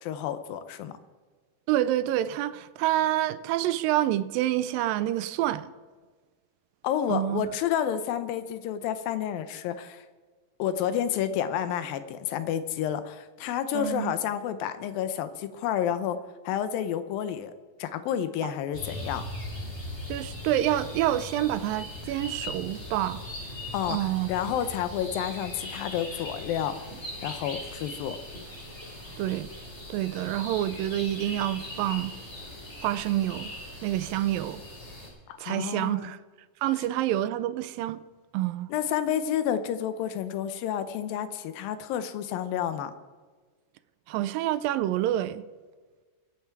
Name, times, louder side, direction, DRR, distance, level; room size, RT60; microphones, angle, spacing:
voice 1, 0.0-1.0 6.8-10.1 10.6-16.2 16.4-17.5 17.8-19.2 23.7-26.9 27.2-28.2 35.3-36.1 38.7-42.9, left 9 dB, 80° left, 2.6 m, -30 dB
voice 2, 1.7-5.7 7.1-7.4 13.7-14.1 20.1-23.2 23.9-24.3 29.2-29.5 29.9-32.1 32.8-33.5 33.8-34.6 35.4-36.2 36.6-38.0 38.3-38.7 44.1-45.4, right 13 dB, 80° right, 2.2 m, -27 dB
sound 1, 18.7-35.1, left 1 dB, 20° left, 3.9 m, -40 dB
23.5 x 9.2 x 4.7 m
omnidirectional pair, 4.2 m